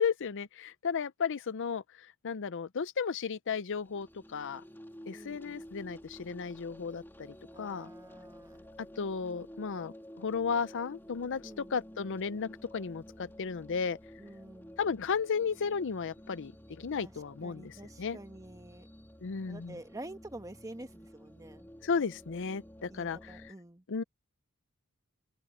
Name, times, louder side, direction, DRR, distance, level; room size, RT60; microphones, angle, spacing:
voice 1, 0.0-4.6 5.1-7.9 8.8-14.0 14.8-18.2 19.2-19.7 21.8-23.4 23.9-24.0, left 5 dB, 60° left, 0.6 m, -34 dB
sound 1, 3.7-23.5, equal, 10° left, 2.9 m, -52 dB
voice 2, 5.1-5.6 7.5-8.7 11.4-11.8 14.2-14.8 17.0-17.1 17.4-18.9 19.5-21.7 22.9-23.8, right 1 dB, 15° right, 1.6 m, -48 dB
open air
head